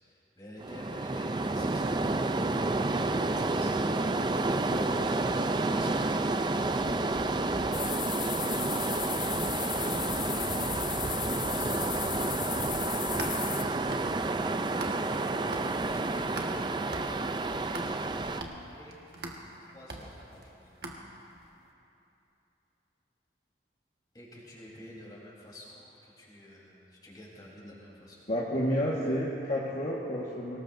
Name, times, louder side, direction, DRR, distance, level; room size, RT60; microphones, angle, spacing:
voice 1, 0.0-3.8 5.7-6.2 7.0-8.8 10.1-12.0 13.2-14.4 15.8-18.0 18.6-18.9 19.7-20.7 24.1-28.2, left 1 dB, 25° left, -5 dB, 3.9 m, -50 dB
sound 1, 0.6-18.4, right 2 dB, 25° right, 0.4 m, -30 dB
voice 2, 4.7-5.1 28.3-30.6, equal, 45° left, -6 dB, 1.6 m, -31 dB
sound 2, 7.7-13.6, left 10 dB, 90° left, 1.2 m, -36 dB
sound 3, 12.9-15.2 15.5-21.5, right 2 dB, 60° right, 1.6 m, -42 dB
24.5 x 19.0 x 2.7 m, 2.8 s
head